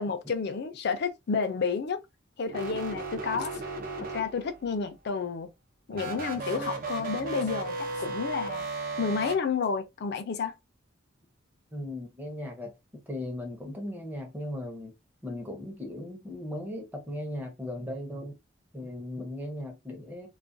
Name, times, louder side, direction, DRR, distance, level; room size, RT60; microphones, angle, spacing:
voice 1, 0.0-2.0 2.4-3.6 4.1-5.5 5.9-8.7 9.0-10.5, left 5 dB, 55° left, 0.4 m, -30 dB
sound 1, 2.5-4.7 5.9-9.3, right 3 dB, 45° right, 0.5 m, -35 dB
voice 2, 11.7-14.9 15.2-18.4 18.7-20.3, left 1 dB, 10° right, 0.7 m, -37 dB
2.4 x 2.2 x 2.5 m
head